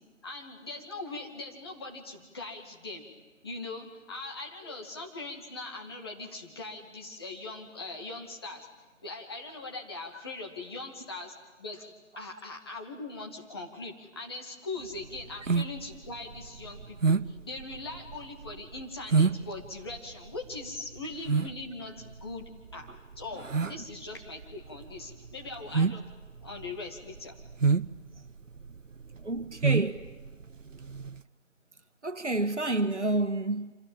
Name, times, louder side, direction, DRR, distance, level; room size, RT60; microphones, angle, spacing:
voice 1, 0.2-3.1 3.4-8.7 9.0-22.9 23.2-26.0 26.4-27.4, left 3 dB, 20° left, 2.3 m, -41 dB
sound 1, 14.8-31.2, right 4 dB, 80° right, 0.8 m, -30 dB
voice 2, 29.2-30.0 32.0-33.7, right 2 dB, 65° right, 2.0 m, -29 dB
29.5 x 26.5 x 7.5 m
figure-of-eight pair, 160°, 38 cm